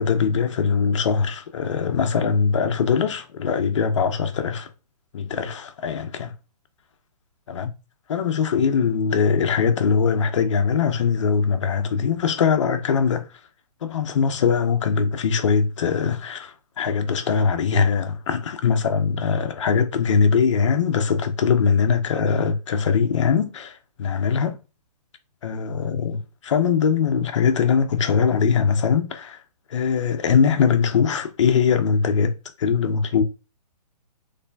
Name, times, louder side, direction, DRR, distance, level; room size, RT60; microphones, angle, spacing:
voice 1, 0.0-4.7 5.1-6.3 7.5-7.7 8.1-13.2 13.8-24.6 25.4-26.2 26.4-29.4 29.7-32.3 32.6-33.2, left 6 dB, 45° left, 0.8 m, -21 dB
4.1 x 3.3 x 2.7 m
hypercardioid pair, 165°, 21 cm